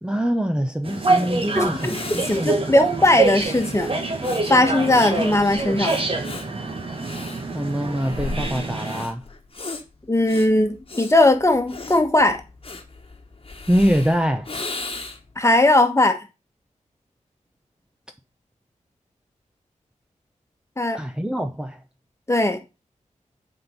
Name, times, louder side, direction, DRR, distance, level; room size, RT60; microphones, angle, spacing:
voice 1, 0.0-2.5 7.5-9.2 13.7-14.5 20.9-21.8, equal, 5° right, 0.8 m, -24 dB
sound 1, 0.8-9.0, right 3 dB, 45° right, 1.6 m, -25 dB
Breathing, 1.3-1.4 1.7-15.4, left 3 dB, 45° left, 1.4 m, -36 dB
voice 2, 1.5-2.0 2.3-3.9 4.5-5.9 10.1-12.4 15.4-16.2 20.8-21.0 22.3-22.6, left 2 dB, 20° left, 1.4 m, -18 dB
7.5 x 4.4 x 5.4 m
wide cardioid pair, 75°, 13 cm